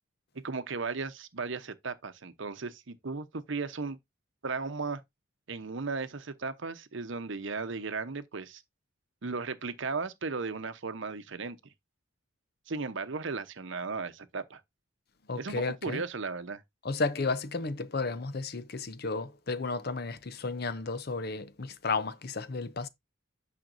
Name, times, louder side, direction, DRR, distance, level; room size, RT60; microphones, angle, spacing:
voice 1, 0.3-4.0 4.4-5.0 5.5-8.6 9.2-11.6 12.7-14.6 15.4-16.6, right 4 dB, 65° right, 0.8 m, -36 dB
voice 2, 15.3-16.0 16.8-22.9, left 3 dB, 45° left, 0.6 m, -33 dB
9.0 x 5.9 x 2.6 m
head